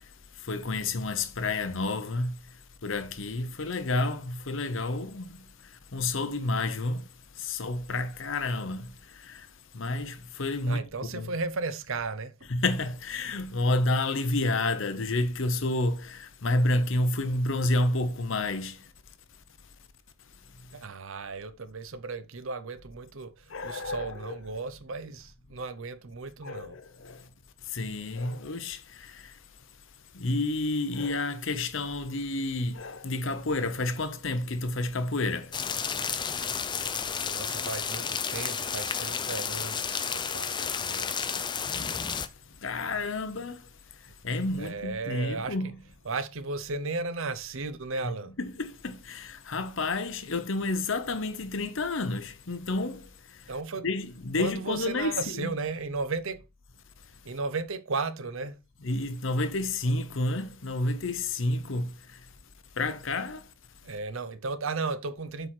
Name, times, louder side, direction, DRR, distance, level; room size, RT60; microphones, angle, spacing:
voice 1, 0.4-2.4 2.8-5.4 5.9-7.0 7.4-9.5 9.7-11.3 12.5-18.8 23.5-24.4 26.4-27.2 27.7-29.2 30.1-35.5 41.8-41.9 42.6-43.6 44.2-45.8 48.0-53.1 53.8-55.5 58.8-61.9 62.8-63.4, left 2 dB, 60° left, 0.9 m, -30 dB
voice 2, 10.6-12.5 20.7-26.8 37.2-41.1 44.6-45.6 46.1-48.3 53.5-53.9 54.4-56.4 57.2-58.6 63.8-65.5, right 3 dB, 65° right, 0.7 m, -35 dB
sound 1, 35.5-42.3, left 6 dB, 20° left, 0.4 m, -32 dB
7.7 x 4.7 x 4.4 m
head